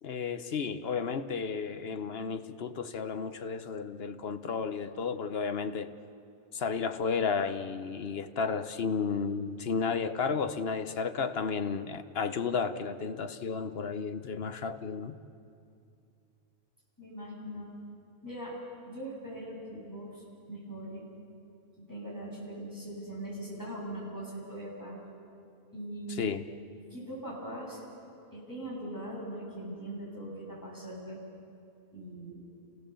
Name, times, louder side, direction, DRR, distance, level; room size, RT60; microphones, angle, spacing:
voice 1, 0.0-5.9 6.5-15.2 26.1-26.4, left 5 dB, 50° left, 9 dB, 1.0 m, -33 dB
voice 2, 17.0-17.7 18.2-18.6 18.9-21.1 21.8-25.0 25.7-26.3 26.9-27.8 28.3-31.2 31.9-32.4, right 1 dB, 10° left, -5 dB, 7.4 m, -41 dB
29.5 x 17.0 x 7.1 m, 2.5 s
omnidirectional pair, 1.5 m